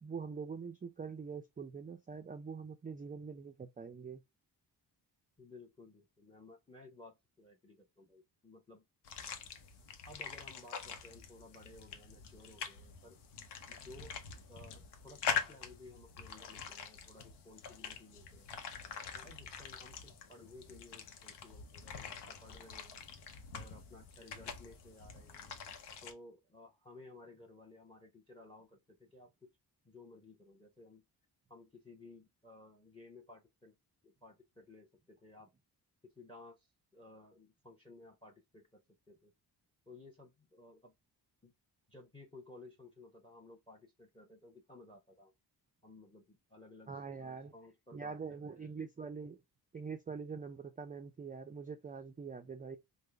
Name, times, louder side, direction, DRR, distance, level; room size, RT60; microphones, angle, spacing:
voice 1, 0.0-4.2 46.9-47.5 47.9-49.4 49.7-52.8, right 5 dB, 20° right, 0.4 m, -44 dB
voice 2, 5.4-8.8 10.0-13.2 13.7-14.2 14.5-18.6 19.0-23.0 23.5-25.5 26.0-29.5 29.8-31.0 31.5-33.7 34.0-35.5 36.2-38.8 39.1-39.3 39.9-40.9 41.4-41.5 41.9-45.3 45.8-48.8, left 2 dB, 15° left, 0.8 m, -57 dB
sound 1, 9.0-26.1, left 6 dB, 85° left, 0.8 m, -44 dB
3.6 x 2.1 x 3.3 m
cardioid pair, 90°, 40 cm